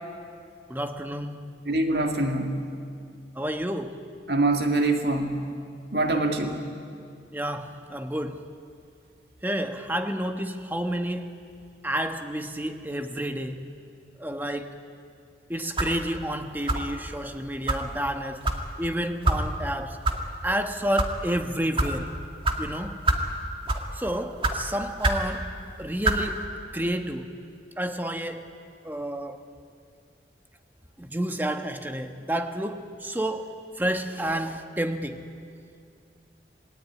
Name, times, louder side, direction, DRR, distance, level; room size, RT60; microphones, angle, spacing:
voice 1, 0.7-1.5 3.3-4.0 7.3-8.5 9.4-11.3 11.8-13.6 14.2-14.7 15.5-18.4 18.8-20.0 20.4-22.1 22.6-23.0 23.9-25.5 25.8-27.3 27.8-28.5 28.8-29.4 31.0-35.3, right 1 dB, 10° right, 6 dB, 1.3 m, -30 dB
voice 2, 1.7-2.6 4.3-5.5 5.9-6.6, right 2 dB, 65° right, 4 dB, 2.2 m, -24 dB
sound 1, 15.8-16.0 16.7-17.0 17.7-17.8 18.4-18.6 19.2-19.4 20.0-20.2 20.8-21.1 21.8-21.9 22.4-22.6 23.1-23.3 23.7-23.9 24.4-24.6 25.0-25.3 26.0-26.2, right 2 dB, 30° right, 2.2 m, -24 dB
27.0 x 20.5 x 9.7 m, 2.4 s
head